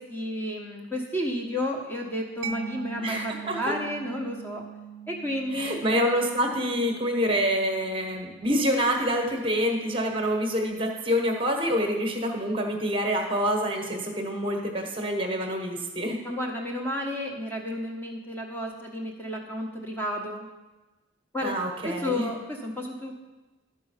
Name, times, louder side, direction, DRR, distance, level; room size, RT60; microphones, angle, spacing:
voice 1, 0.0-4.6 5.1-5.8 16.2-20.5 21.3-21.6 21.8-23.2, left 1 dB, 10° left, 0 dB, 1.1 m, -32 dB
Mallet percussion, 2.4-9.8, right 8 dB, 70° right, 0.4 m, -43 dB
voice 2, 3.0-3.6 5.5-16.2 21.4-22.3, equal, 25° right, 2 dB, 1.1 m, -27 dB
12.5 x 4.7 x 5.6 m, 1.2 s
head